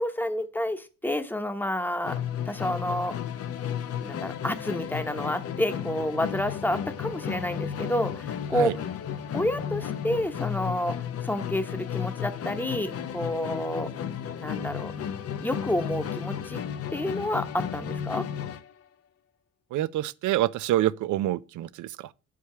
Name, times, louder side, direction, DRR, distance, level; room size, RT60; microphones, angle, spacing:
voice 1, 0.0-3.1 4.0-8.9 9.3-13.9 14.4-14.9 15.4-16.6 16.9-18.3, left 1 dB, 5° left, 1.0 m, -29 dB
Musical instrument, 2.0-18.7, left 8 dB, 50° left, 0.7 m, -33 dB
voice 2, 19.7-22.1, right 14 dB, 75° right, 0.5 m, -27 dB
6.8 x 4.9 x 5.7 m
cardioid pair, 90°, 30 cm